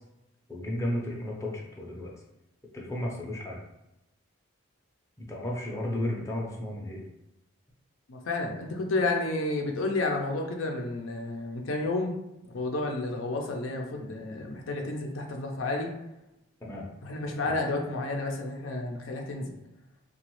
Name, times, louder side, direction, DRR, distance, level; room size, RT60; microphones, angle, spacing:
voice 1, 0.5-2.1 2.7-3.6 5.2-7.0 16.6-16.8 17.4-17.6, left 1 dB, 15° left, -3 dB, 0.5 m, -33 dB
voice 2, 8.1-12.1 12.4-15.9 17.0-19.6, left 2 dB, 85° left, 2 dB, 0.5 m, -31 dB
2.9 x 2.3 x 3.0 m, 0.90 s
head